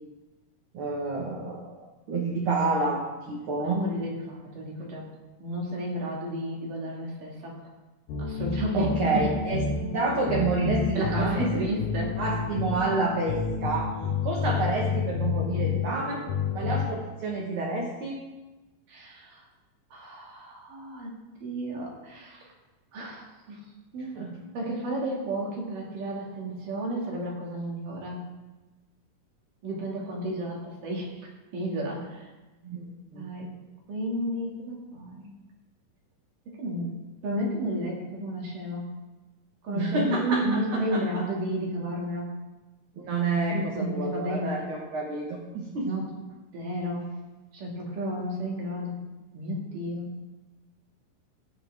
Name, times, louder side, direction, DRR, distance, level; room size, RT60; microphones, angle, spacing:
voice 1, 0.7-3.8 8.7-11.5 12.2-13.9 14.2-16.2 16.5-18.2 24.2-24.3 32.6-32.8 33.1-33.3 39.7-41.0 43.0-45.9, right 3 dB, 50° right, -2 dB, 1.8 m, -29 dB
voice 2, 3.6-5.1 5.4-7.6 8.2-8.9 11.0-12.1 18.9-19.4 19.9-21.1 21.4-22.5 22.9-23.6 23.9-24.2 24.5-28.3 29.6-32.3 33.2-33.5 33.9-35.3 36.5-36.9 37.2-38.9 39.6-42.3 43.5-44.7 45.8-46.1 46.5-47.2 47.5-49.0 49.3-50.1, right 1 dB, 80° right, -2 dB, 3.8 m, -32 dB
sound 1, 8.1-16.9, left 5 dB, 80° left, 2.7 m, -30 dB
15.5 x 8.5 x 3.5 m, 1.1 s
omnidirectional pair, 3.8 m